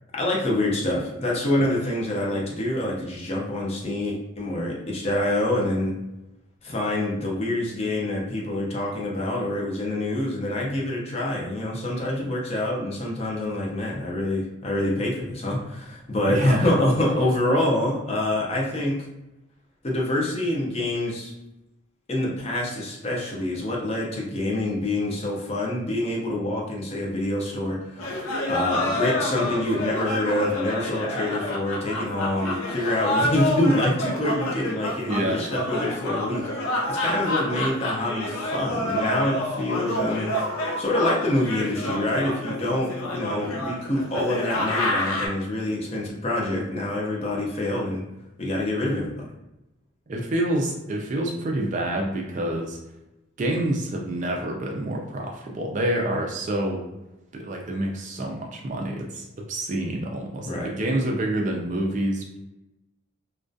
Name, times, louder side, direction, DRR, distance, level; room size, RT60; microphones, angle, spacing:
voice 1, 0.1-5.9 6.6-19.0 19.8-21.3 22.1-40.3 40.8-48.0 48.4-49.1 60.4-60.7, left 1 dB, 30° left, -2 dB, 0.4 m, -26 dB
voice 2, 16.2-16.7 35.1-35.4 50.1-52.8 53.4-56.9 57.3-62.4, right 1 dB, 35° right, 1 dB, 0.3 m, -27 dB
sound 1, 28.0-45.3, left 1 dB, 85° left, 0.5 m, -28 dB
2.3 x 2.2 x 2.5 m, 0.95 s
head